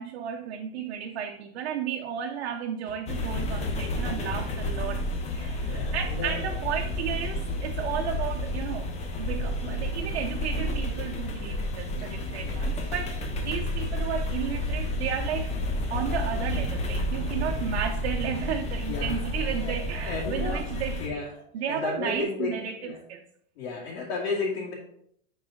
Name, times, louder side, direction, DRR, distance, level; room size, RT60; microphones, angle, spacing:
voice 1, 0.0-5.0 5.3-13.2 13.4-15.5 15.9-21.2 21.5-23.3, right 8 dB, 90° right, 2 dB, 0.8 m, -33 dB
sound 1, 3.1-21.1, left 1 dB, 20° left, 0.8 m, -30 dB
voice 2, 5.6-6.9 11.9-12.1 12.4-12.7 18.9-20.6 21.0-23.0 23.6-24.7, left 3 dB, 75° left, -7 dB, 2.2 m, -34 dB
10.0 x 4.1 x 3.8 m, 0.70 s
supercardioid pair, 155°, 32 cm